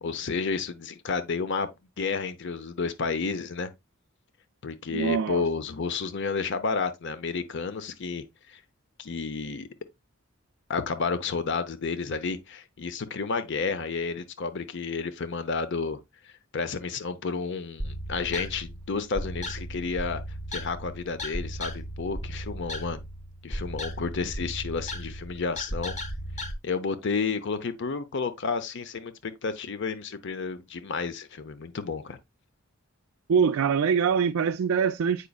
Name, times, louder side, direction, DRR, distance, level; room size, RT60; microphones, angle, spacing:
voice 1, 0.0-1.7 2.0-3.7 4.6-8.6 9.0-9.7 10.7-16.0 16.5-20.2 20.5-23.0 23.4-25.9 26.6-32.2, left 4 dB, 60° left, 0.7 m, -31 dB
voice 2, 4.9-5.4 33.3-35.3, right 6 dB, 85° right, 0.4 m, -24 dB
sound 1, 17.8-26.5, equal, 35° left, 1.3 m, -36 dB
8.3 x 5.1 x 2.3 m
head